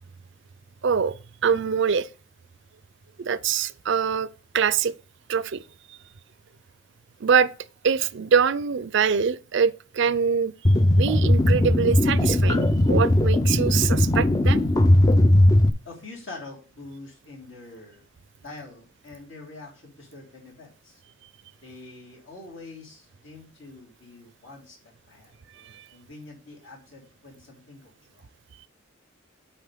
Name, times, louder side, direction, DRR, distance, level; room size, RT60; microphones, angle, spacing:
voice 1, 0.8-1.1 1.4-2.1 3.2-4.3 4.5-4.9 5.3-5.6 7.2-7.5 7.8-10.5 11.0-14.6 25.7-25.8, right 6 dB, 60° right, 0.5 m, -23 dB
sound 1, 10.6-15.7, left 1 dB, 20° left, 0.4 m, -18 dB
voice 2, 15.8-18.0 18.4-21.0 21.6-28.3, left 3 dB, 65° left, 3.2 m, -45 dB
7.3 x 4.5 x 5.0 m
head